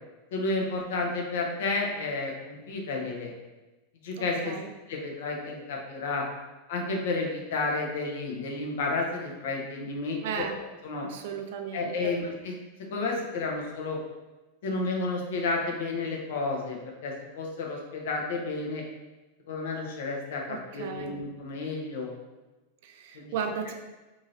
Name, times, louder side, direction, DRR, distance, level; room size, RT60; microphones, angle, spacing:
voice 1, 0.3-3.3 4.0-4.6 4.9-6.2 6.7-10.4 10.8-11.1 11.7-12.5 12.9-14.0 14.6-18.8 19.5-22.1 23.1-23.3, left 3 dB, 55° left, 0 dB, 0.6 m, -31 dB
voice 2, 4.2-4.7 10.2-10.6 11.0-12.1 20.5-21.2 22.8-23.7, right 6 dB, 50° right, 5 dB, 0.3 m, -35 dB
2.7 x 2.7 x 2.6 m, 1.1 s
figure-of-eight pair, 90°, 0 cm